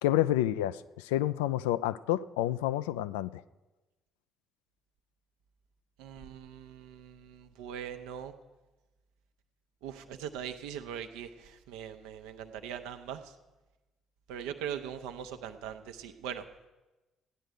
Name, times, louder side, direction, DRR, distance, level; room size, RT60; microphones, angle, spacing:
voice 1, 0.0-3.4, left 13 dB, 70° left, 0.3 m, -29 dB
voice 2, 6.0-8.3 9.8-13.2 14.3-16.4, right 8 dB, 65° right, 0.8 m, -41 dB
15.0 x 9.8 x 5.1 m
figure-of-eight pair, 45°, 0 cm